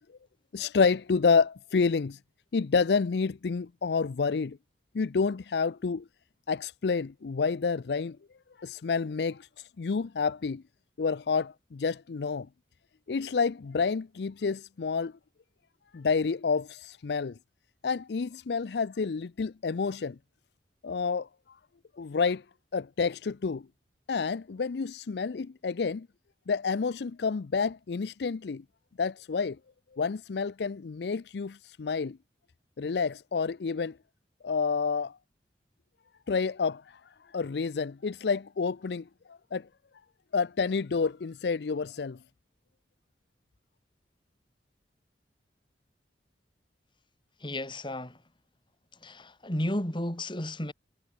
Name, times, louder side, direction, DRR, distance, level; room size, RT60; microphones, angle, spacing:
voice 1, 0.5-2.2 2.5-4.6 4.9-6.0 6.5-8.2 8.6-9.5 9.8-10.6 11.0-12.5 13.1-15.1 15.9-17.3 17.8-20.2 20.8-21.3 22.0-22.4 22.7-23.6 24.1-26.1 26.5-28.6 29.0-29.6 30.0-32.2 32.8-33.9 34.4-35.2 36.3-37.0 37.3-39.7 40.3-42.2, left 5 dB, 65° left, 0.5 m, -29 dB
voice 2, 47.4-48.2 49.0-50.7, left 1 dB, 30° left, 3.7 m, -33 dB
head